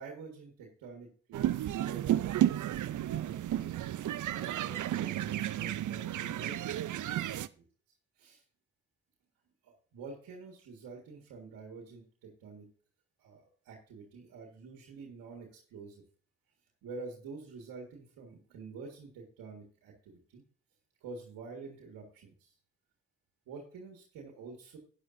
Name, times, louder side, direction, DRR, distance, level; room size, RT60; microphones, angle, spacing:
voice 1, 0.0-3.8 4.3-7.7 8.2-8.4 9.6-12.7 13.2-16.0 16.8-20.4 21.0-22.5 23.5-24.8, right 4 dB, 90° right, 0 dB, 1.8 m, -48 dB
sound 1, 1.3-7.5, right 12 dB, 65° right, 0.6 m, -32 dB
12.5 x 9.6 x 2.6 m, 0.43 s
supercardioid pair, 45°, 33 cm